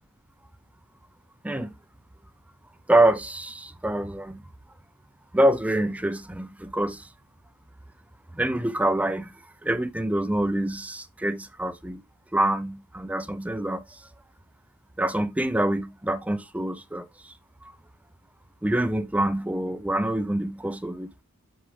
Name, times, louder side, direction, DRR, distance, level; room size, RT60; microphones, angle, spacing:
voice 1, 2.9-4.4 5.3-7.1 8.3-9.3 9.6-12.0 12.3-14.1 15.0-17.3 17.6-17.7 18.6-21.2, right 1 dB, 5° right, 0.5 m, -26 dB
7.7 x 5.0 x 3.3 m
head